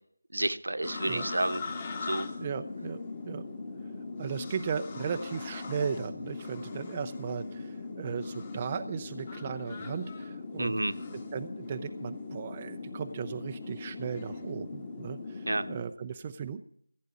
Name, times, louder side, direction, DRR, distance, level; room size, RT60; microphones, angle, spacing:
voice 1, 0.3-1.6 2.0-2.3 10.6-10.9 15.5-15.6, right 1 dB, 75° right, 8 dB, 1.1 m, -30 dB
sound 1, 0.8-15.8, left 3 dB, 25° left, 1.4 m, -40 dB
voice 2, 2.4-3.5 4.2-10.8 11.1-16.6, right 6 dB, 20° right, 7 dB, 0.5 m, -36 dB
15.5 x 8.4 x 8.1 m, 0.66 s
figure-of-eight pair, 170°, 0 cm